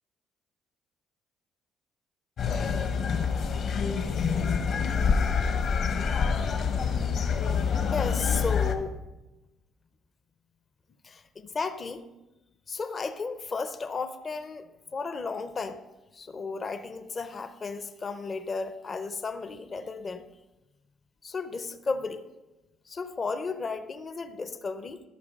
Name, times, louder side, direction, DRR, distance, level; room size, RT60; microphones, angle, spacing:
sound 1, 2.4-8.7, left 6 dB, 45° left, 0.9 m, -26 dB
voice 1, 7.9-9.0 11.0-12.1 12.7-14.7 14.9-15.8 16.1-20.3 21.2-22.3 22.9-25.0, left 4 dB, 25° left, 10 dB, 0.5 m, -34 dB
13.0 x 5.8 x 5.1 m, 1.0 s
cardioid pair, 175°, 0 cm